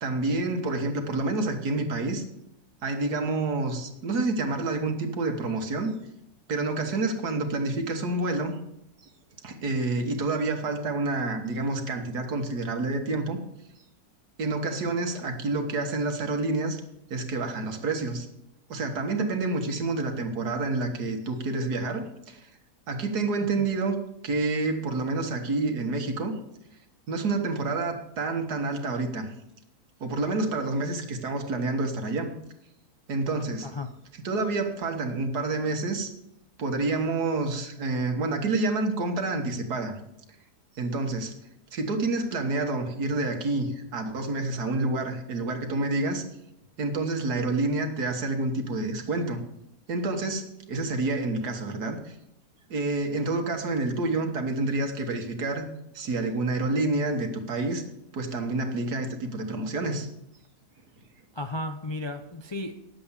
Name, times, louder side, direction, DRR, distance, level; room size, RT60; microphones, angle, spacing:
voice 1, 0.0-2.2 2.8-5.9 6.5-8.6 9.4-13.4 14.4-16.8 17.1-18.3 18.7-22.5 22.9-24.0 24.2-26.4 27.1-29.3 30.0-32.3 33.1-33.7 34.2-36.1 36.6-40.0 40.8-41.3 41.7-46.2 46.8-49.4 49.9-52.2 52.7-55.7 55.9-57.8 58.1-60.1, right 2 dB, 80° right, 5 dB, 2.0 m, -28 dB
voice 2, 61.3-62.7, left 2 dB, 35° left, 4 dB, 0.4 m, -34 dB
10.0 x 7.9 x 7.2 m, 0.82 s
omnidirectional pair, 1.7 m